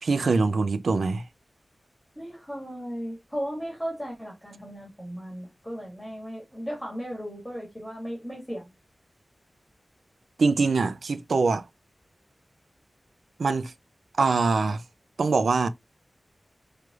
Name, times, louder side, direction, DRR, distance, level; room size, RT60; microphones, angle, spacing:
voice 1, 0.0-1.2 10.4-11.7 13.4-13.7 14.2-14.8 15.2-15.7, right 4 dB, 85° right, 0.4 m, -23 dB
voice 2, 2.2-8.7, equal, 5° left, 1.8 m, -36 dB
4.6 x 3.3 x 2.4 m
wide cardioid pair, 100°, 0 cm